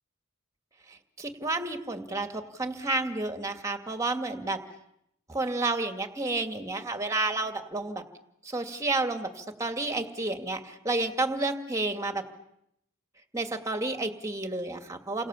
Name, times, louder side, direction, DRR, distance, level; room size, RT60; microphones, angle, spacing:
voice 1, 0.9-4.6 5.3-8.0 8.4-12.2 13.3-15.3, right 2 dB, 15° right, 7 dB, 2.3 m, -31 dB
30.0 x 26.5 x 7.2 m, 0.78 s
head